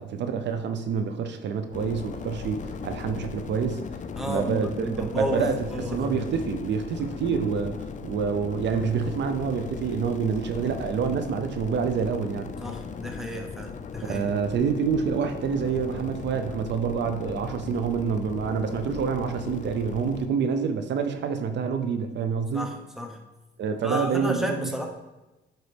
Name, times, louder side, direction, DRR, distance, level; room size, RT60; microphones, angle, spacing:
voice 1, 0.0-3.8 4.2-12.5 14.0-22.7 23.6-24.7, right 6 dB, 65° right, 7 dB, 0.6 m, -27 dB
sound 1, 1.7-20.3, left 6 dB, 40° left, 0.4 m, -37 dB
voice 2, 4.1-6.3 12.6-14.2 22.5-23.2 23.8-24.8, equal, ahead, 2 dB, 1.0 m, -32 dB
8.9 x 4.0 x 3.4 m, 1.1 s
cardioid pair, 90°, 20 cm